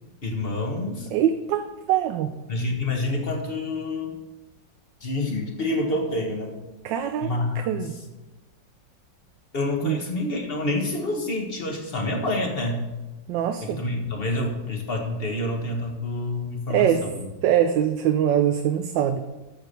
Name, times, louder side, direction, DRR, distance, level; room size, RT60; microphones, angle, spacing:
voice 1, 0.2-1.1 2.5-4.1 5.0-6.5 7.2-7.7 9.5-12.8 13.6-17.2, left 2 dB, 35° left, 2 dB, 1.4 m, -27 dB
voice 2, 1.1-2.3 6.8-7.3 7.6-8.0 9.8-10.0 13.3-13.8 16.7-17.1 17.4-19.2, right 10 dB, 80° right, 7 dB, 1.3 m, -23 dB
13.0 x 4.7 x 6.7 m, 1.1 s
omnidirectional pair, 2.0 m